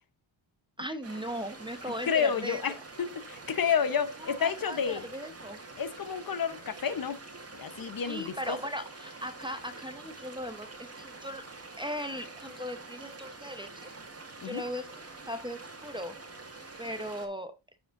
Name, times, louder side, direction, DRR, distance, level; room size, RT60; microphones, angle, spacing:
voice 1, 0.8-2.6 4.2-5.6 8.0-10.7 11.0-11.5 11.8-13.9 14.4-16.2 16.8-17.6, equal, 10° right, 0.8 m, -38 dB
sound 1, 1.0-17.3, right 3 dB, 30° right, 1.9 m, -46 dB
voice 2, 2.1-2.7 3.0-5.0 5.8-7.2 7.5-8.6 14.4-14.6, left 7 dB, 45° left, 0.9 m, -30 dB
14.5 x 5.0 x 2.5 m
wide cardioid pair, 120°, 49 cm